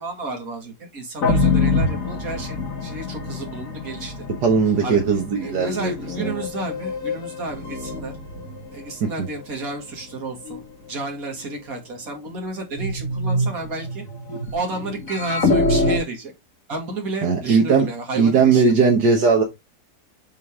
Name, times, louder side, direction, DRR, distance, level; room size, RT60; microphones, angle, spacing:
voice 1, 0.0-4.3 4.8-5.0 5.4-8.1 8.7-14.0 14.5-16.3 16.7-18.8, right 2 dB, 55° right, 2.6 m, -31 dB
sound 1, 1.2-8.8 9.4-9.5 10.5-10.6 12.7-16.0, left 2 dB, 55° left, 2.2 m, -25 dB
voice 2, 4.4-5.9 6.2-6.3 9.0-9.3 17.2-17.9 18.2-19.4, right 5 dB, 75° right, 1.9 m, -18 dB
8.3 x 4.0 x 3.6 m
omnidirectional pair, 1.8 m